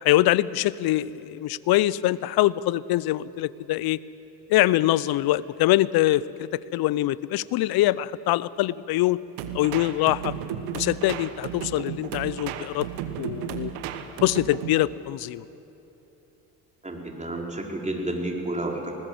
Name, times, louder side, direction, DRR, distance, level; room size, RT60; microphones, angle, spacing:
voice 1, 0.0-4.0 4.5-9.2 9.5-10.3 10.7-12.9 13.2-13.7 14.2-15.4, left 15 dB, 55° left, 20 dB, 0.7 m, -23 dB
sound 1, 9.4-14.9, right 9 dB, 75° right, 1.3 m, -34 dB
voice 2, 16.8-18.9, right 1 dB, 15° right, 0 dB, 4.5 m, -30 dB
20.5 x 19.0 x 7.8 m, 3.0 s
hypercardioid pair, 60°, 44 cm